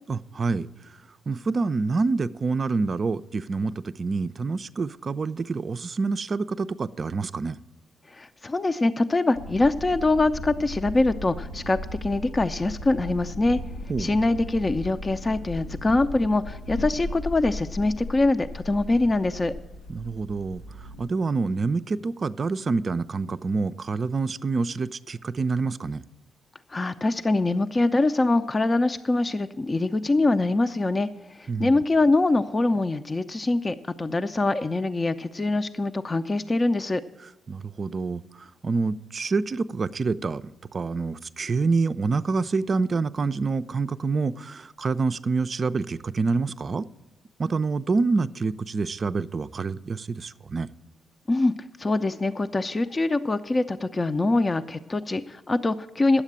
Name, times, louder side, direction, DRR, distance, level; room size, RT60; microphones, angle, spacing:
voice 1, 0.1-0.7 1.3-7.6 13.9-14.1 19.9-20.6 21.0-26.0 31.5-31.7 37.5-40.4 40.7-46.9 47.4-50.7, right 4 dB, 45° right, 14 dB, 0.4 m, -27 dB
voice 2, 8.1-13.6 14.0-19.5 26.7-31.1 31.4-37.0 51.3-51.5 51.8-56.2, left 2 dB, 30° left, 9 dB, 0.5 m, -24 dB
sound 1, 9.3-21.1, left 1 dB, 85° left, 0.6 m, -37 dB
9.9 x 7.3 x 8.6 m, 1.0 s
hypercardioid pair, 40°, 0 cm